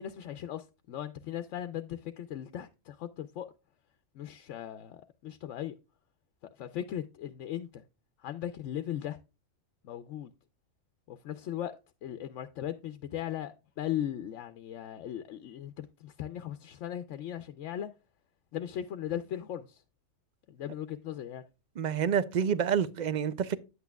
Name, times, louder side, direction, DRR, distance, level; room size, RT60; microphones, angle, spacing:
voice 1, 0.0-3.5 4.1-5.7 6.4-7.8 8.2-9.2 9.8-10.3 11.1-11.8 12.0-17.9 18.5-19.8 20.5-21.5, left 11 dB, 85° left, 0.9 m, -38 dB
voice 2, 21.8-23.6, right 8 dB, 55° right, 0.5 m, -28 dB
9.5 x 8.3 x 2.2 m
omnidirectional pair, 1.2 m